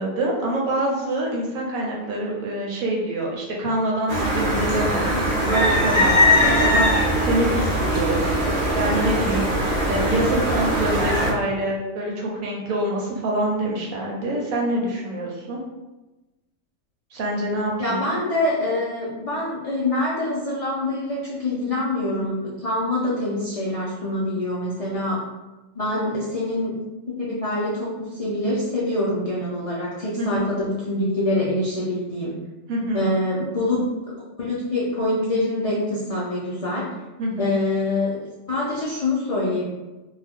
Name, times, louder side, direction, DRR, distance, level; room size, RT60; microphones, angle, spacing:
voice 1, 0.0-15.6 17.1-18.0 30.2-30.5 32.7-33.1 37.2-37.5, right 1 dB, 85° right, -2 dB, 1.2 m, -26 dB
sound 1, 4.1-11.3, equal, 40° right, 0.6 m, -21 dB
voice 2, 17.8-25.2 25.8-26.7 27.1-32.3 32.9-36.9 37.4-38.2 38.5-39.7, left 1 dB, 75° left, -6 dB, 0.3 m, -25 dB
2.7 x 2.2 x 3.4 m, 1.1 s
omnidirectional pair, 1.4 m